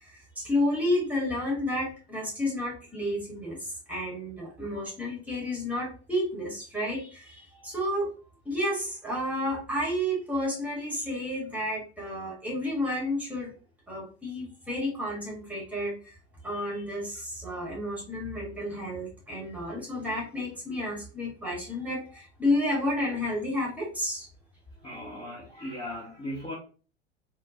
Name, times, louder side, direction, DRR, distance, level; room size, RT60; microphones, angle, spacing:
voice 1, 0.0-8.1 8.4-13.5 13.9-16.1 16.4-24.3, left 1 dB, 5° right, -3 dB, 1.5 m, -31 dB
voice 2, 24.8-26.5, left 1 dB, 15° left, -6 dB, 1.0 m, -37 dB
4.2 x 2.3 x 2.7 m, 0.36 s
figure-of-eight pair, 85°, 36 cm